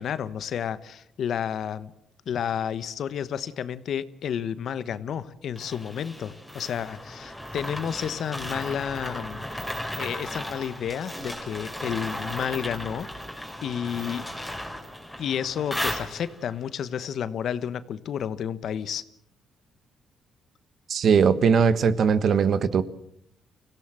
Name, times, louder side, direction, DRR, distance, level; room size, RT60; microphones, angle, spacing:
voice 1, 0.0-1.9 2.3-9.4 10.0-13.1 13.6-14.3 15.2-19.0, left 8 dB, 65° left, 14 dB, 1.1 m, -31 dB
sound 1, 5.6-16.5, left 1 dB, ahead, 4.2 m, -35 dB
voice 2, 20.9-22.8, right 6 dB, 60° right, 14 dB, 1.2 m, -20 dB
25.0 x 16.5 x 7.6 m, 0.75 s
cardioid pair, 90°, 0 cm